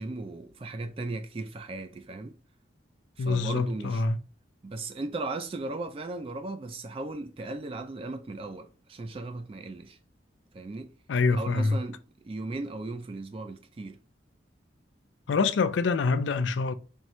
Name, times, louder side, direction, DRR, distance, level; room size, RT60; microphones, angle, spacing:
voice 1, 0.0-2.3 3.2-4.0 4.6-10.0 10.5-10.9 11.3-12.0 12.2-14.0, right 2 dB, 30° right, 0.3 m, -36 dB
voice 2, 3.2-4.2 11.1-11.8 15.3-16.7, left 4 dB, 80° left, 0.4 m, -25 dB
4.5 x 2.7 x 3.0 m
head